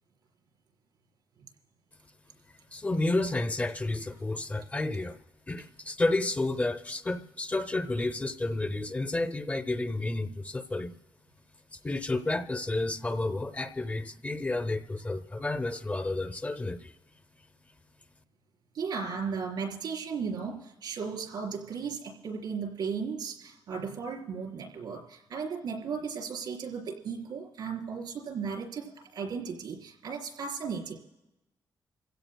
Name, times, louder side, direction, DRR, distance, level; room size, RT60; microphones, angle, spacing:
voice 1, 2.7-5.2 5.5-10.9 11.7-16.9, left 2 dB, 20° left, 9 dB, 0.6 m, -31 dB
voice 2, 18.7-31.0, right 5 dB, 85° right, 1 dB, 4.0 m, -35 dB
27.0 x 16.0 x 2.2 m, 0.98 s
wide cardioid pair, 125°, 7 cm